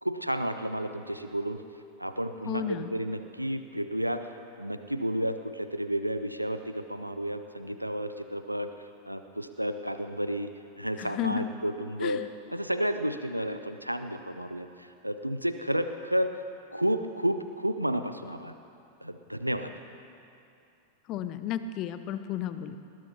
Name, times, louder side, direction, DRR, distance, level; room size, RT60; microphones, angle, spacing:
voice 1, 0.0-1.6 2.0-2.6 2.9-4.2 4.6-8.7 9.1-10.5 10.8-12.2 12.5-16.3 16.7-18.5 19.0-19.7, equal, 90° right, 9 dB, 0.5 m, -31 dB
voice 2, 2.4-2.9 11.0-11.5 12.0-12.3 21.1-22.8, left 9 dB, 40° left, 11 dB, 0.7 m, -33 dB
20.5 x 19.5 x 2.9 m, 2.6 s
figure-of-eight pair, 90°, 0 cm